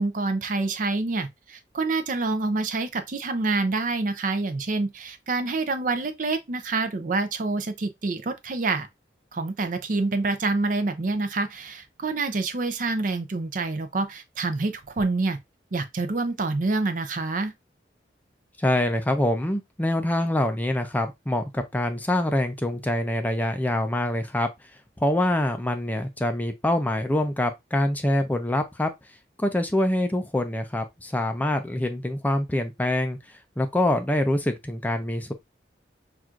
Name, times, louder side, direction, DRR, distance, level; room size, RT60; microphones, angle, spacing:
voice 1, 0.0-8.9 9.3-15.4 15.7-17.5, right 3 dB, 45° right, 0.5 m, -27 dB
voice 2, 18.6-24.5 25.0-28.9 29.4-35.3, left 1 dB, 10° left, 0.3 m, -25 dB
5.8 x 2.4 x 2.4 m
head